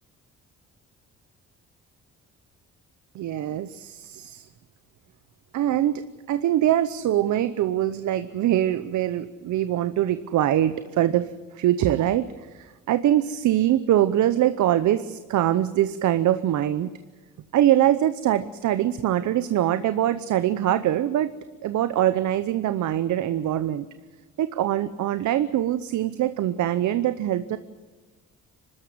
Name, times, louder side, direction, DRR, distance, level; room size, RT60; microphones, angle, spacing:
voice 1, 3.1-4.5 5.5-16.9 17.5-21.3 21.6-23.8 24.4-27.6, right 12 dB, 70° right, 13 dB, 0.8 m, -23 dB
24.0 x 13.5 x 9.6 m, 1.3 s
cardioid pair, 90°, 30 cm